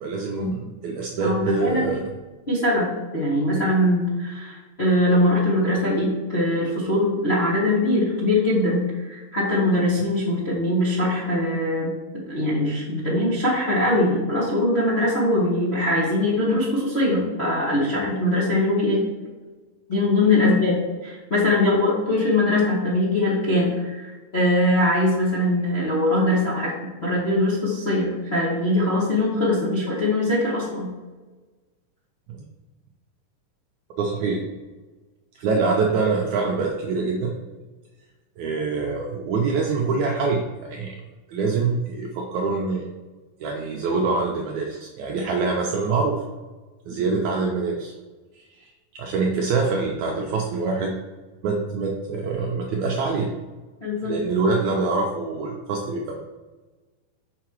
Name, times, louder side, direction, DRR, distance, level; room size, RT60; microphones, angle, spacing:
voice 1, 0.0-2.0 20.4-20.6 32.3-32.5 34.0-34.4 35.4-37.4 38.4-41.0 41.3-42.9 43.4-46.2 46.9-47.9 48.4-50.9 51.4-53.3 54.0-56.2, right 4 dB, 80° right, 0 dB, 1.7 m, -25 dB
voice 2, 1.2-1.9 2.5-19.1 19.9-30.9 53.8-54.1, left 1 dB, 70° left, -8 dB, 0.6 m, -22 dB
6.6 x 4.8 x 4.5 m, 1.3 s
omnidirectional pair, 4.1 m